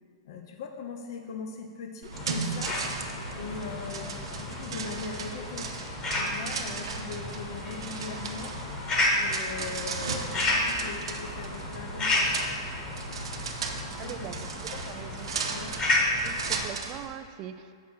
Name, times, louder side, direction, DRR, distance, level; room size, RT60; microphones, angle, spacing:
voice 1, 0.2-2.8 3.4-5.7 6.1-8.6 9.2-12.3 13.9-14.3 14.7-14.9 15.5-15.8, left 5 dB, 55° left, 4 dB, 0.7 m, -40 dB
sound 1, 2.0-17.1, right 5 dB, 80° right, 0.8 m, -37 dB
sound 2, 2.1-16.7, left 2 dB, 25° left, 1.2 m, -32 dB
voice 2, 14.0-14.5 14.9-15.3 16.2-17.7, right 11 dB, 30° right, 10 dB, 0.4 m, -41 dB
7.2 x 6.0 x 4.4 m, 2.3 s
hypercardioid pair, 150°, 3 cm